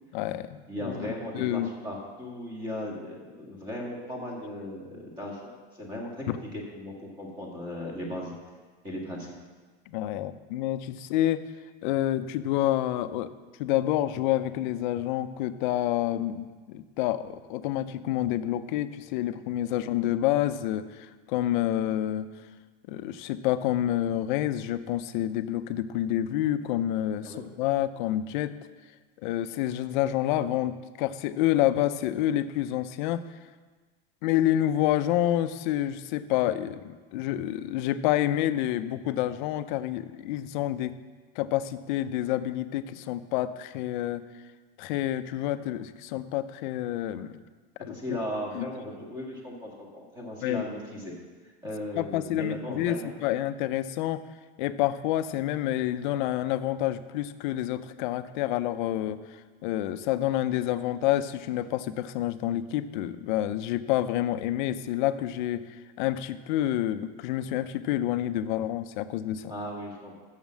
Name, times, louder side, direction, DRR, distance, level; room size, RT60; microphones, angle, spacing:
voice 1, 0.1-1.7 6.3-6.4 9.9-11.4 11.8-13.3 13.6-22.3 22.9-28.5 29.2-33.2 34.2-41.0 41.4-44.2 44.8-47.4 47.9-48.0 48.5-48.7 50.4-50.6 52.0-54.2 54.6-69.5, left 13 dB, 50° left, 12 dB, 0.5 m, -28 dB
voice 2, 0.7-5.5 5.8-6.3 6.7-8.3 8.8-9.3 27.2-27.4 47.9-51.1 51.6-53.1 69.5-70.1, left 1 dB, 15° right, -2 dB, 1.8 m, -37 dB
7.1 x 6.5 x 7.4 m, 1.4 s
supercardioid pair, 160°, 30 cm